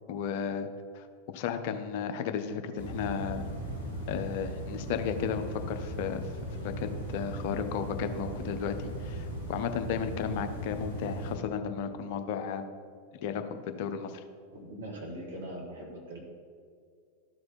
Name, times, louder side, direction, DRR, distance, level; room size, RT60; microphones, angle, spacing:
voice 1, 0.1-0.7 0.9-1.0 1.3-3.4 4.1-6.2 6.6-12.6 13.2-14.2, left 7 dB, 50° left, 8 dB, 0.6 m, -34 dB
sound 1, 2.8-11.4, right 1 dB, 90° right, 1.9 m, -38 dB
voice 2, 14.5-16.2, right 1 dB, 65° right, 0 dB, 1.8 m, -41 dB
12.5 x 4.3 x 4.3 m, 2.2 s
figure-of-eight pair, 90°, 0 cm